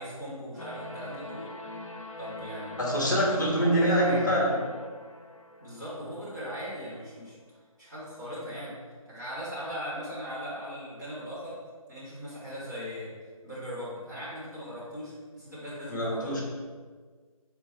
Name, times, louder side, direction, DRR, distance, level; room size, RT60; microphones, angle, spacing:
voice 1, 0.0-1.5 2.2-2.8 3.6-4.2 5.6-7.3 7.8-8.7 9.1-11.6 11.9-13.1 13.4-16.4, equal, 30° right, -9 dB, 1.4 m, -39 dB
sound 1, 0.6-6.6, left 1 dB, 65° left, 0.6 m, -43 dB
voice 2, 2.8-4.5 15.9-16.4, equal, 35° left, -2 dB, 0.9 m, -25 dB
4.6 x 3.6 x 3.2 m, 1.5 s
figure-of-eight pair, 160°, 19 cm